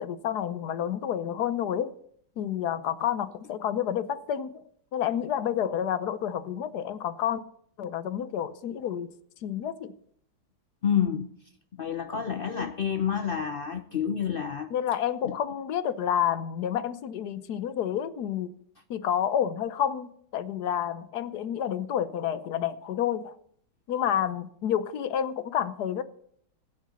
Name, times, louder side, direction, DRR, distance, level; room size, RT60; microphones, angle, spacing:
voice 1, 0.0-1.9 2.4-4.6 4.9-7.4 7.8-9.1 9.4-9.9 14.7-18.5 18.9-23.4 23.9-26.0, left 9 dB, 70° left, 1.3 m, -29 dB
voice 2, 10.8-11.3 11.8-14.7 15.2-15.3, left 8 dB, 85° left, 0.4 m, -28 dB
15.5 x 7.8 x 6.9 m
omnidirectional pair, 1.9 m